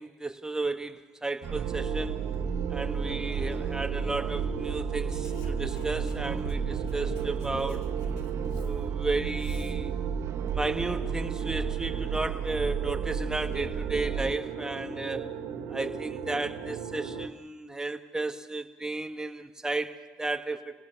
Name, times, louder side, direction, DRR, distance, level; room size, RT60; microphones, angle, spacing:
voice 1, 0.0-2.3 2.7-7.9 8.6-9.9 10.5-15.3 15.7-20.7, right 2 dB, 10° right, 7 dB, 1.9 m, -33 dB
sound 1, 1.4-14.3, right 7 dB, 55° right, 1.5 m, -33 dB
sound 2, 1.5-17.3, right 6 dB, 80° right, 2.1 m, -37 dB
Writing, 5.1-9.8, left 6 dB, 90° left, 2.1 m, -49 dB
28.5 x 17.5 x 6.9 m, 1.3 s
supercardioid pair, 75°, 5 cm